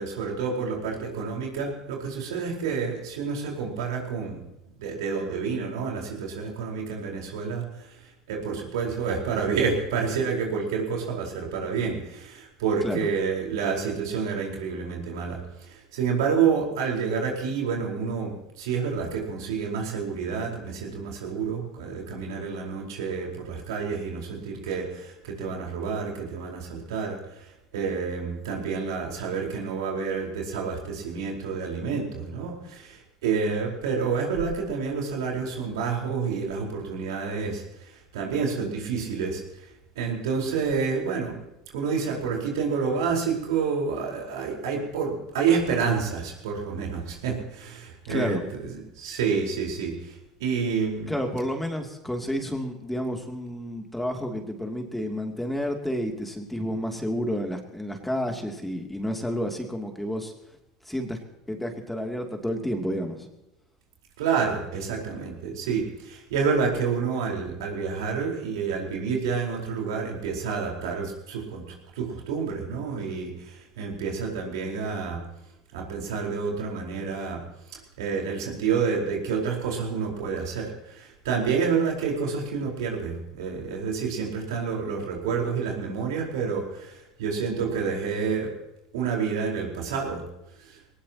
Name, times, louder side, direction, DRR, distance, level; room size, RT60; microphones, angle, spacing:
voice 1, 0.0-4.4 4.8-7.7 8.3-27.4 27.7-37.6 38.1-39.4 40.0-41.5 41.7-48.6 49.0-50.1 50.4-51.1 64.2-75.2 75.7-77.4 78.0-88.5 88.9-90.2 90.7-90.8, right 5 dB, 70° right, 0 dB, 4.7 m, -29 dB
voice 2, 48.1-48.4 51.1-60.3 60.9-61.2 61.5-63.3, equal, 5° left, 3 dB, 2.9 m, -30 dB
21.0 x 19.5 x 3.0 m, 0.89 s
hypercardioid pair, 75°, 2 cm